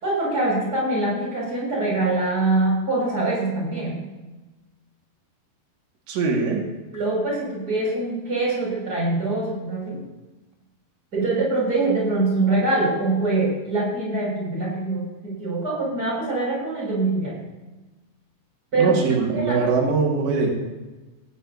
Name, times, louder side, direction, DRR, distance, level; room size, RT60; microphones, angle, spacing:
voice 1, 0.0-4.0 6.9-10.0 11.1-17.4 18.7-19.8 20.4-20.5, right 2 dB, 20° right, -4 dB, 6.3 m, -24 dB
voice 2, 6.1-6.6 18.8-20.5, right 4 dB, 85° right, 0 dB, 4.1 m, -22 dB
19.0 x 15.5 x 2.8 m, 1.1 s
omnidirectional pair, 4.9 m